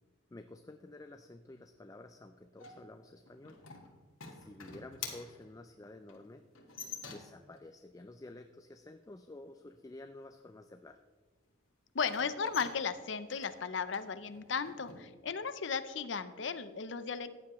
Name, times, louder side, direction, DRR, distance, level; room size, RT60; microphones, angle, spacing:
voice 1, 0.3-3.6 4.3-6.5 7.1-11.0, left 2 dB, 15° left, 7 dB, 0.3 m, -51 dB
sound 1, 2.6-7.5 12.0-15.0, left 6 dB, 80° left, 1.7 m, -48 dB
voice 2, 11.9-17.3, left 5 dB, 60° left, 12 dB, 0.6 m, -35 dB
14.5 x 9.8 x 3.1 m, 1.4 s
head